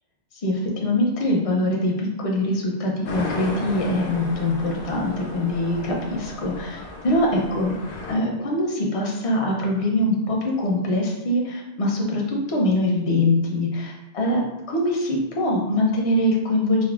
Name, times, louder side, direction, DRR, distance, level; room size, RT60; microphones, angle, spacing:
voice 1, 0.4-7.7 8.1-16.8, left 1 dB, 45° left, -1 dB, 0.5 m, -23 dB
sound 1, 3.1-8.2, left 2 dB, 90° left, 0.9 m, -35 dB
3.4 x 2.1 x 2.3 m, 0.93 s
omnidirectional pair, 1.1 m